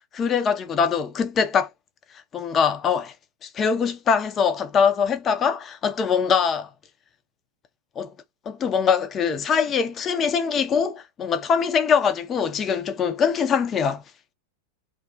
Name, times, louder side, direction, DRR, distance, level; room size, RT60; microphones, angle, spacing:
voice 1, 0.1-1.7 2.3-3.1 3.4-6.7 8.0-8.1 8.5-14.0, left 6 dB, 25° left, 0.5 m, -23 dB
2.4 x 2.3 x 2.3 m
figure-of-eight pair, 90°, 0 cm